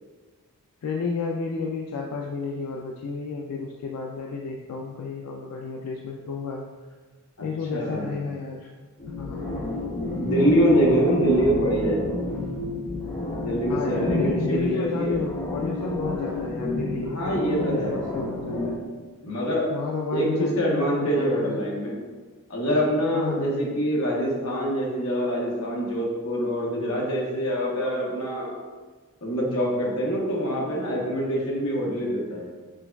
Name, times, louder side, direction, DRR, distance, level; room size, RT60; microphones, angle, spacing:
voice 1, 0.8-6.7 7.4-8.7 9.1-9.5 13.7-18.7 19.7-21.6 23.1-23.5, left 4 dB, 90° left, 0 dB, 0.3 m, -31 dB
voice 2, 7.7-8.1 10.2-12.1 13.4-15.2 17.1-18.0 19.2-19.7 20.1-21.9 22.5-28.5 29.2-32.5, equal, 65° left, -3 dB, 1.0 m, -25 dB
sound 1, 9.0-18.8, left 2 dB, 25° left, 0.5 m, -30 dB
6.1 x 2.3 x 2.2 m, 1.4 s
head